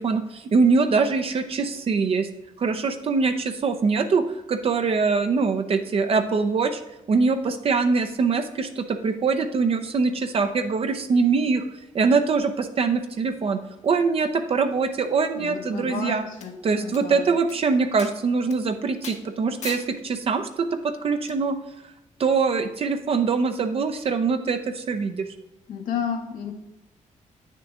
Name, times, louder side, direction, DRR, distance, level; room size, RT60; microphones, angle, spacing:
voice 1, 0.0-2.3 2.6-6.8 7.1-11.6 11.9-16.2 16.6-21.6 22.2-25.2, right 4 dB, 45° right, 7 dB, 0.6 m, -23 dB
voice 2, 15.4-16.5 16.8-17.4 25.7-26.5, left 6 dB, 90° left, 1 dB, 1.6 m, -31 dB
slap slaps hit punch punches foley, 16.4-16.5 16.9-17.0 17.5-17.6 18.0-18.1 18.5-18.6 19.0-19.2 19.6-19.9 21.3-21.4, left 6 dB, 60° left, 1.1 m, -37 dB
9.0 x 6.6 x 3.6 m, 0.96 s
cardioid pair, 135°, 13 cm